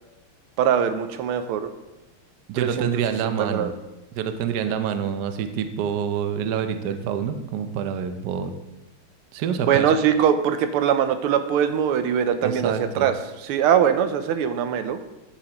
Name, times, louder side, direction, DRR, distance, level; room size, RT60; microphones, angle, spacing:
voice 1, 0.6-1.7 2.6-2.9 3.2-3.7 9.6-13.1 13.4-15.0, right 8 dB, 85° right, 9 dB, 1.6 m, -22 dB
voice 2, 2.5-3.7 4.1-8.5 9.3-9.9 12.4-13.1, right 8 dB, 65° right, 8 dB, 1.0 m, -27 dB
11.5 x 7.2 x 3.0 m, 1.0 s
omnidirectional pair, 2.4 m